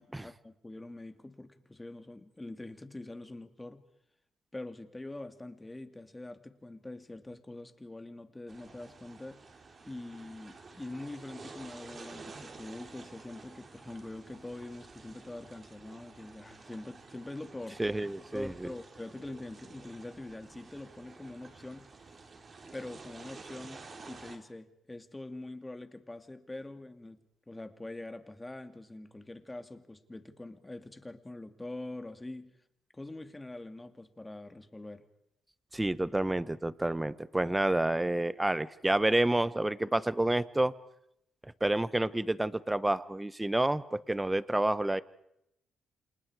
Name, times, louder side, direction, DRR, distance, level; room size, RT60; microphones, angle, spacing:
voice 1, 0.0-3.8 4.5-9.4 9.9-17.8 18.3-22.2 22.7-23.8 24.1-27.2 27.5-32.5 32.9-35.0, left 2 dB, 15° left, 8 dB, 2.3 m, -44 dB
sound 1, 8.5-24.4, right 4 dB, 40° right, 3.8 m, -51 dB
voice 2, 17.8-18.7 35.7-40.7 41.6-45.0, right 1 dB, 10° right, 16 dB, 1.1 m, -29 dB
29.5 x 27.5 x 4.9 m, 0.78 s
cardioid pair, 90°, 0 cm